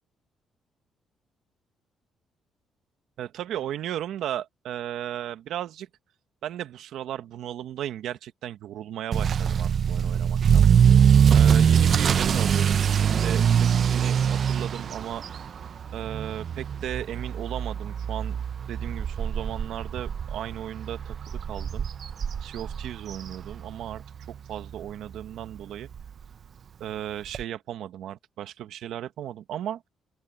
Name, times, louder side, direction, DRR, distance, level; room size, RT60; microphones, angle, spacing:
voice 1, 3.2-5.9 6.4-10.7 11.3-15.2 15.9-18.4 18.7-21.9 22.4-25.9 26.8-29.9, right 11 dB, 80° right, 1.6 m, -35 dB
Motor vehicle (road) / Accelerating revving vroom, 9.1-24.0 24.3-24.7 25.2-25.3 25.6-25.7 25.9-26.0 27.3-27.4, right 7 dB, 55° right, 0.7 m, -23 dB
open air
cardioid pair, 90°, 0 cm